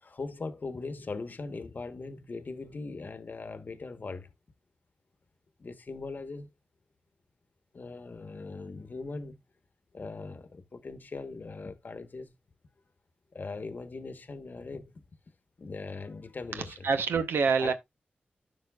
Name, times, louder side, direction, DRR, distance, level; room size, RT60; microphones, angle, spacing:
voice 1, 0.0-4.3 5.6-6.5 7.7-9.4 9.9-12.3 13.3-15.0 15.6-16.9 17.6-17.7, left 3 dB, 55° left, 1.0 m, -40 dB
voice 2, 16.5-17.7, right 5 dB, 90° right, 0.7 m, -27 dB
12.5 x 4.9 x 2.3 m
cardioid pair, 50°, 4 cm